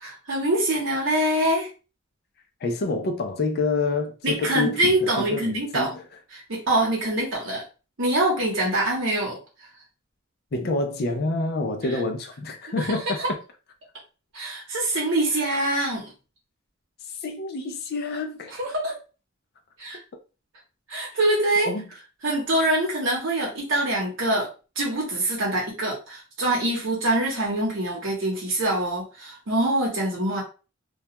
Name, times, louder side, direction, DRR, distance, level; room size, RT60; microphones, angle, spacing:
voice 1, 0.0-1.7 4.2-5.9 6.3-7.6 8.0-9.4 13.2-13.3 14.3-16.1 18.6-19.0 19.8-20.0 20.9-21.7 22.2-24.5 24.8-30.4, right 1 dB, 80° right, 0.8 m, -24 dB
voice 2, 2.6-6.0 10.5-13.2 17.2-18.6 21.6-21.9, left 3 dB, 55° left, 0.4 m, -27 dB
2.3 x 2.2 x 2.8 m
head